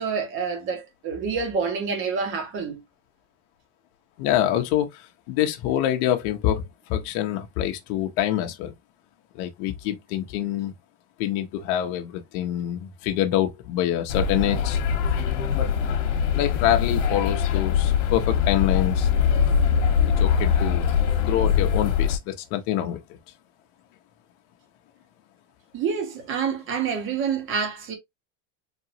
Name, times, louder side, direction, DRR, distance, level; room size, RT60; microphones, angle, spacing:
voice 1, 0.0-2.8 25.7-28.0, right 6 dB, 35° right, 1.5 m, -27 dB
voice 2, 4.2-8.7 9.3-10.7 11.2-14.8 15.5-15.7 16.3-19.5 20.2-20.9 21.2-23.2, left 12 dB, 55° left, 1.1 m, -26 dB
sound 1, 14.1-22.2, left 7 dB, 75° left, 1.5 m, -22 dB
4.5 x 3.0 x 2.7 m
supercardioid pair, 155°, 37 cm